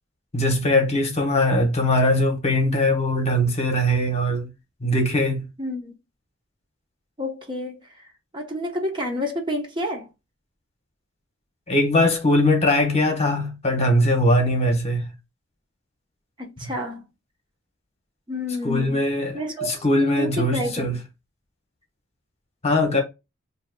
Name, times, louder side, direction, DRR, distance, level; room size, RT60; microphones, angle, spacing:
voice 1, 0.3-4.5 4.8-5.5 11.7-15.1 18.6-21.0 22.6-23.0, left 1 dB, 35° left, 1.0 m, -21 dB
voice 2, 5.6-6.0 7.2-7.8 8.3-10.1 16.4-17.0 18.3-19.0 19.3-19.8 20.2-21.0, left 1 dB, 25° right, 0.8 m, -29 dB
6.3 x 2.7 x 2.2 m
head